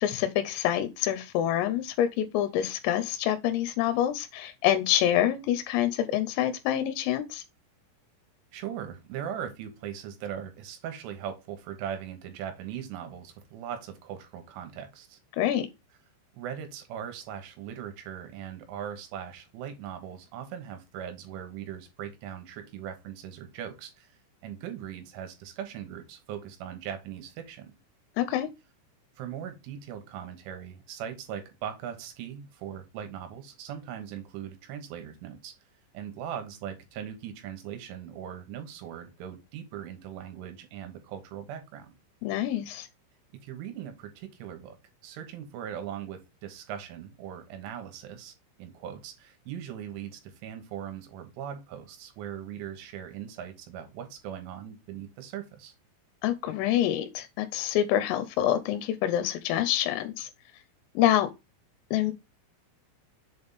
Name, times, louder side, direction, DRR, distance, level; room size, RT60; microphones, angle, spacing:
voice 1, 0.0-7.4 15.4-15.7 28.2-28.5 42.2-42.9 56.2-60.3 61.0-61.3 61.9-62.1, left 11 dB, 85° left, 3.3 m, -26 dB
voice 2, 8.5-15.2 16.3-24.1 24.4-27.8 29.2-35.5 35.9-42.0 43.4-44.8 45.0-55.7, right 9 dB, 75° right, 3.5 m, -40 dB
7.3 x 3.5 x 4.0 m
omnidirectional pair, 5.9 m